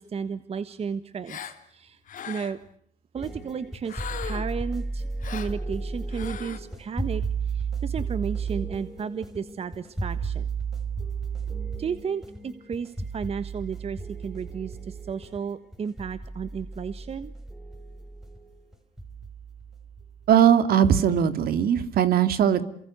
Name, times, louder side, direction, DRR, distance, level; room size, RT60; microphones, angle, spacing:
voice 1, 0.0-2.0 2.3-2.6 3.1-10.5 11.8-17.3, right 6 dB, 35° right, 13 dB, 1.3 m, -33 dB
Gasp, 1.3-1.6 2.1-2.7 3.9-4.6 5.2-5.6 6.1-6.6, left 8 dB, 50° left, 3.3 m, -38 dB
sound 1, 3.2-20.4, right 4 dB, 5° right, 4.1 m, -34 dB
voice 2, 20.3-22.6, right 9 dB, 65° right, 11 dB, 2.8 m, -20 dB
28.5 x 24.0 x 8.2 m, 0.67 s
cardioid pair, 110°, 17 cm